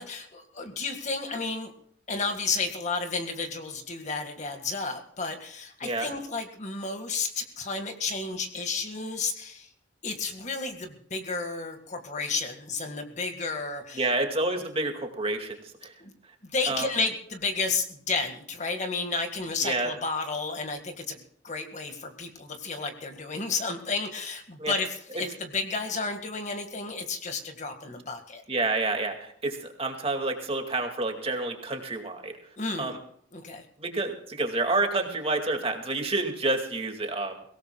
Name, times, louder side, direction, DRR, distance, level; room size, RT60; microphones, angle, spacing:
voice 1, 0.0-1.7 2.1-9.7 10.0-14.1 16.0-16.1 16.4-28.4 32.6-33.0 33.3-33.7, left 4 dB, 40° left, 5 dB, 1.9 m, -32 dB
voice 2, 13.9-15.6 15.8-15.9 16.7-16.9 19.6-19.9 24.6-24.7 28.5-32.3 32.8-33.0 33.8-37.4, right 2 dB, 30° right, 4 dB, 2.3 m, -29 dB
23.0 x 17.5 x 2.4 m, 0.63 s
head